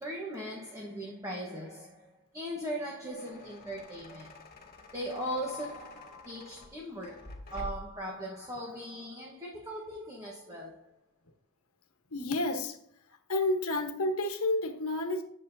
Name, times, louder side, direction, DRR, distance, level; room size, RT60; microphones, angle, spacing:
voice 1, 0.0-4.4 4.9-10.9, equal, 15° right, 1.2 m, -39 dB
sound 1, 2.8-8.0, left 1 dB, 40° left, 1.9 m, -48 dB
voice 2, 12.1-12.8 13.3-15.2, left 2 dB, 75° left, 1.2 m, -30 dB
10.5 x 7.4 x 2.7 m
head